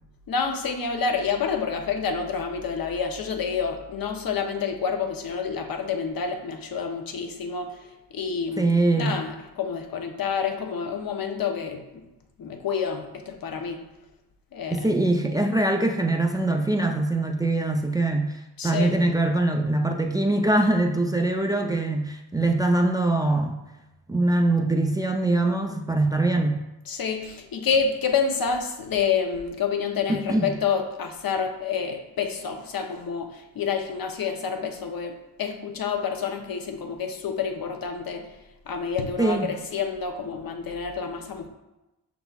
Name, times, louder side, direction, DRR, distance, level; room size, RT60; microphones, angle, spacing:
voice 1, 0.3-7.7 8.1-8.7 8.9-12.0 12.4-13.8 14.5-14.8 18.6-19.0 26.9-38.3 38.7-41.5, left 6 dB, 55° left, 5 dB, 0.7 m, -28 dB
voice 2, 8.6-9.1 14.7-23.6 24.1-26.6 30.1-30.5 39.2-39.5, right 2 dB, 10° right, 3 dB, 0.4 m, -23 dB
5.7 x 3.9 x 2.3 m, 0.97 s
cardioid pair, 75°, 41 cm